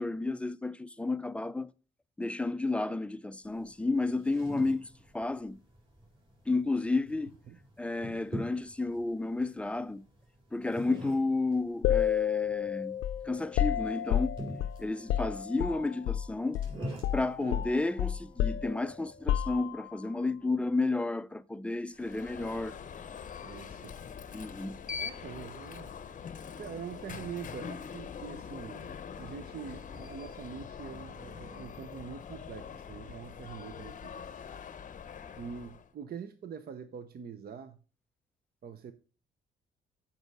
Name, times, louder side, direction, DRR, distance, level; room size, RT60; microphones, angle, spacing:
voice 1, 0.0-1.7 2.2-4.9 5.1-5.6 6.5-7.3 7.8-10.0 10.5-13.0 13.3-14.3 14.8-16.7 17.1-22.8 24.3-24.8, left 3 dB, 5° left, 0.4 m, -32 dB
sound 1, 3.4-19.3, equal, 25° right, 4.2 m, -46 dB
sound 2, 11.8-16.3 16.5-16.8 17.0-20.0, left 10 dB, 85° left, 0.5 m, -31 dB
Alarm, 22.0-35.9, left 7 dB, 40° left, 0.7 m, -43 dB
voice 2, 23.4-24.0 25.0-26.2 26.6-28.9 29.2-34.3 35.4-37.8 38.6-38.9, right 7 dB, 50° right, 0.7 m, -44 dB
7.8 x 5.4 x 4.7 m
cardioid pair, 90°, 20 cm